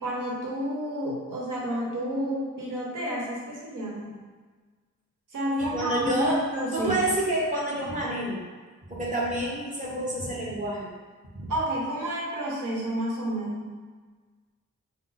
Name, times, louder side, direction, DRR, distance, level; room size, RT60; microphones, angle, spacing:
voice 1, 0.0-4.2 5.3-6.9 11.5-13.8, equal, 85° right, -3 dB, 1.1 m, -30 dB
voice 2, 5.6-6.4 6.7-8.4 8.9-10.9 11.3-11.5, right 1 dB, 25° right, -5 dB, 1.1 m, -28 dB
5.9 x 2.1 x 4.0 m, 1.5 s
wide cardioid pair, 115°, 31 cm